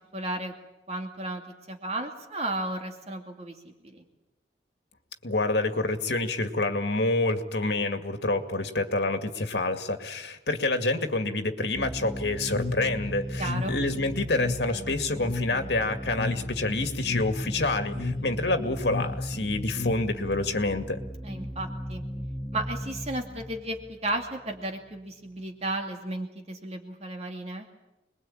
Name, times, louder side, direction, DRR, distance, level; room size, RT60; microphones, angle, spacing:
voice 1, 0.1-0.5 0.9-1.4 1.7-4.0 13.4-13.7 21.2-22.0 22.5-27.7, right 1 dB, 35° right, 3 dB, 2.4 m, -34 dB
voice 2, 5.2-21.0, left 2 dB, 65° left, 7 dB, 2.2 m, -27 dB
sound 1, 11.7-25.0, equal, 5° left, 0.8 m, -37 dB
sound 2, 12.5-20.4, left 3 dB, 50° left, 1.8 m, -35 dB
26.0 x 21.5 x 8.9 m, 0.91 s
head